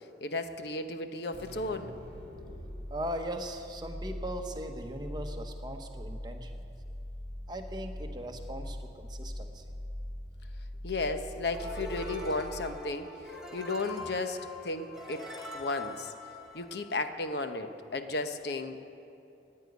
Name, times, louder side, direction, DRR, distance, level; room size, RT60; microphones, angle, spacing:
voice 1, 0.2-1.9 10.8-13.1 13.5-15.3 15.5-16.1 16.5-18.8, left 2 dB, 65° left, 8 dB, 0.9 m, -34 dB
sound 1, 1.3-12.8, equal, 35° left, 3.2 m, -42 dB
voice 2, 2.9-6.5 7.5-9.6, equal, 25° right, 5 dB, 1.0 m, -39 dB
sound 2, 11.5-17.0, left 1 dB, 5° right, 2.0 m, -43 dB
14.5 x 9.7 x 9.4 m, 2.9 s
head